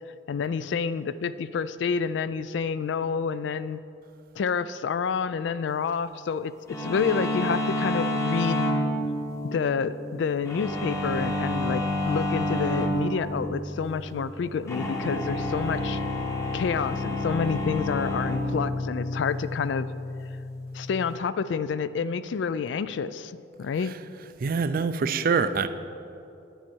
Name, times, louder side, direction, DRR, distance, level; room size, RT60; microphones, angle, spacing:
voice 1, 0.3-3.8 4.4-8.7 9.4-16.0 16.5-19.9 20.7-23.9, left 6 dB, 70° left, 15 dB, 0.3 m, -28 dB
sound 1, 6.7-21.2, left 1 dB, 15° left, 0.8 m, -29 dB
voice 2, 24.4-25.7, right 5 dB, 50° right, 12 dB, 0.4 m, -25 dB
10.0 x 9.6 x 4.5 m, 2.8 s
head